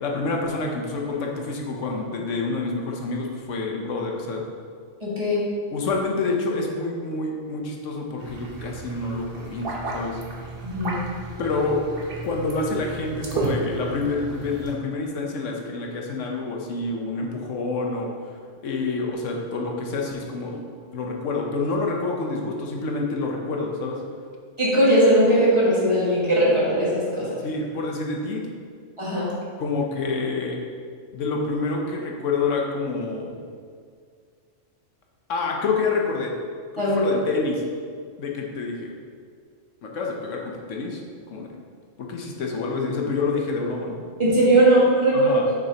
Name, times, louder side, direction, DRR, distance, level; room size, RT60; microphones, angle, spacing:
voice 1, 0.0-4.4 5.7-10.2 11.4-11.8 12.2-18.3 18.6-20.6 20.9-24.0 27.4-28.4 29.6-30.6 31.1-33.3 35.3-36.3 36.7-37.6 38.2-38.9 39.8-41.0 41.3-41.5 42.0-44.0 45.1-45.5, left 3 dB, 75° left, 0 dB, 1.1 m, -27 dB
voice 2, 5.0-5.4 10.6-11.0 24.6-27.2 29.0-29.3 36.8-37.0 44.2-45.4, right 1 dB, 25° right, -7 dB, 1.6 m, -19 dB
sound 1, 8.2-14.7, right 2 dB, 50° right, 1.0 m, -33 dB
6.5 x 6.3 x 2.8 m, 2.1 s
omnidirectional pair, 1.3 m